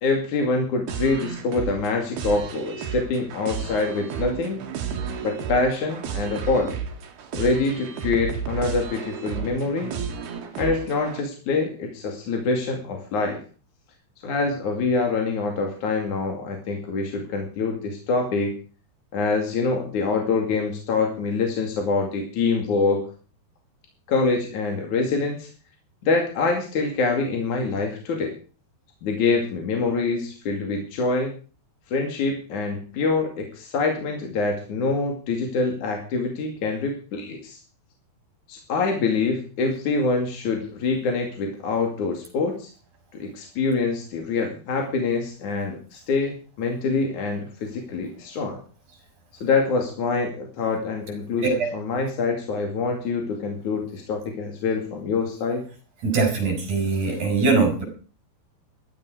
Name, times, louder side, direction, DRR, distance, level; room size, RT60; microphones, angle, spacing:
voice 1, 0.0-4.6 5.2-6.8 7.3-9.9 10.6-13.4 14.2-18.6 19.1-23.1 24.1-25.5 26.0-28.4 29.0-31.3 31.9-37.6 38.5-42.7 43.2-48.6 49.4-55.6, left 4 dB, 50° left, 2 dB, 3.4 m, -25 dB
sound 1, 0.9-11.2, right 7 dB, 65° right, 3.9 m, -32 dB
voice 2, 56.0-57.8, right 4 dB, 45° right, 5 dB, 7.0 m, -21 dB
16.5 x 13.5 x 4.9 m, 0.38 s
omnidirectional pair, 4.9 m